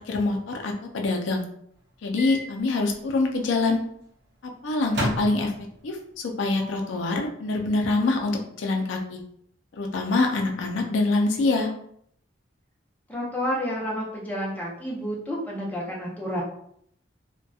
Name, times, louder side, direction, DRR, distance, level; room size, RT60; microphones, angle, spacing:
voice 1, 0.0-1.4 2.0-3.8 4.4-5.5 5.8-9.2 9.8-11.7, left 3 dB, 80° left, 2 dB, 0.4 m, -25 dB
Microwave oven, 2.2-2.5 2.8-2.9 4.9-5.9, equal, 60° right, 0.7 m, -31 dB
voice 2, 13.1-16.4, equal, 10° left, -4 dB, 0.5 m, -30 dB
2.7 x 2.2 x 2.3 m, 0.68 s
head